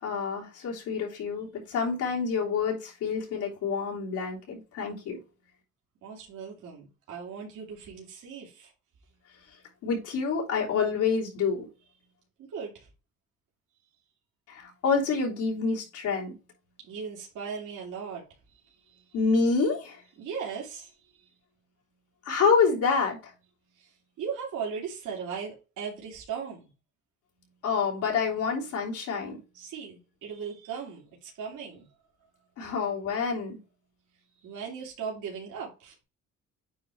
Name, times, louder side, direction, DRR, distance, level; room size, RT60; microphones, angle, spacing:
voice 1, 0.0-5.2 9.8-11.7 14.5-16.3 19.1-20.0 22.2-23.3 27.6-29.4 32.6-33.6, left 5 dB, 85° left, 3.3 m, -27 dB
voice 2, 6.0-8.7 12.4-12.9 16.8-19.2 20.2-21.3 23.7-26.6 29.5-31.9 32.6-32.7 34.3-36.0, right 6 dB, 85° right, 2.7 m, -38 dB
9.0 x 3.2 x 3.6 m
cardioid pair, 90°, 30 cm